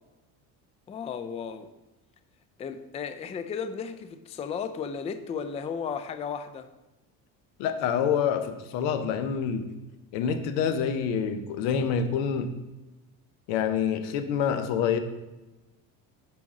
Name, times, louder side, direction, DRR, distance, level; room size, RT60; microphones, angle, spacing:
voice 1, 0.9-1.7 2.6-6.7, left 6 dB, 15° left, 11 dB, 0.3 m, -34 dB
voice 2, 7.6-9.7 10.1-12.5 13.5-15.0, left 7 dB, 80° left, 10 dB, 0.8 m, -27 dB
6.0 x 5.0 x 3.7 m, 1.1 s
supercardioid pair, 80°, 44 cm